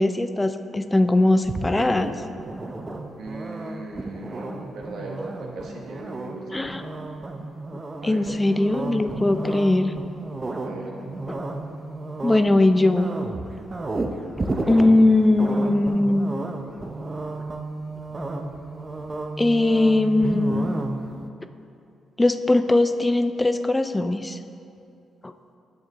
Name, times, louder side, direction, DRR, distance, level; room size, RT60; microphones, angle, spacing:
voice 1, 0.0-2.1 6.5-6.8 8.0-9.9 11.3-11.5 12.2-13.1 14.7-16.3 19.4-20.7 22.2-24.4 25.2-25.3, left 2 dB, 20° left, 9 dB, 0.3 m, -20 dB
sound 1, 1.5-21.3, right 2 dB, 30° right, 0.6 m, -33 dB
voice 2, 3.2-6.7 8.0-8.3 10.6-10.9, right 2 dB, 75° right, -1 dB, 1.2 m, -37 dB
9.2 x 6.5 x 3.0 m, 2.6 s
cardioid pair, 70°, 0 cm